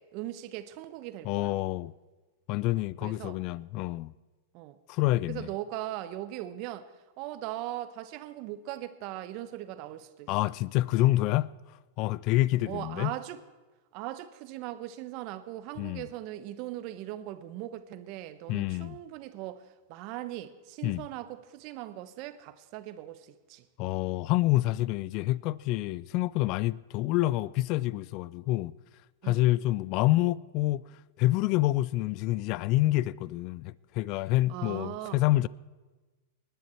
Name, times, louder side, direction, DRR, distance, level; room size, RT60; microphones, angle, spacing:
voice 1, 0.0-1.6 3.0-3.4 4.5-4.8 5.3-10.3 12.7-13.4 13.9-23.6 29.2-29.4 34.5-35.2, right 14 dB, 50° right, 1.0 m, -39 dB
voice 2, 1.2-1.9 2.5-4.1 4.9-5.5 10.3-11.5 12.0-13.1 15.8-16.1 18.5-19.0 20.8-21.0 23.8-28.7 29.2-30.9 31.2-35.5, left 17 dB, 45° left, 0.3 m, -27 dB
20.0 x 10.5 x 4.5 m
hypercardioid pair, 120°, 0 cm